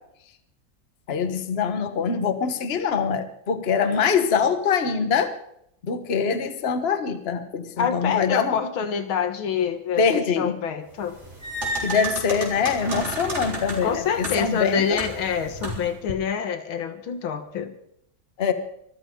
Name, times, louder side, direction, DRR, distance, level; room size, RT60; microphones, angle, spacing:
voice 1, 1.1-5.3 5.8-8.6 10.0-10.6 11.8-15.0 18.4-18.5, left 6 dB, 35° left, 9 dB, 1.4 m, -24 dB
voice 2, 7.8-11.2 13.8-17.8, left 7 dB, 85° left, 9 dB, 2.2 m, -26 dB
sound 1, 11.0-16.0, right 2 dB, 35° right, 4.4 m, -33 dB
24.5 x 14.0 x 3.8 m, 0.73 s
omnidirectional pair, 2.2 m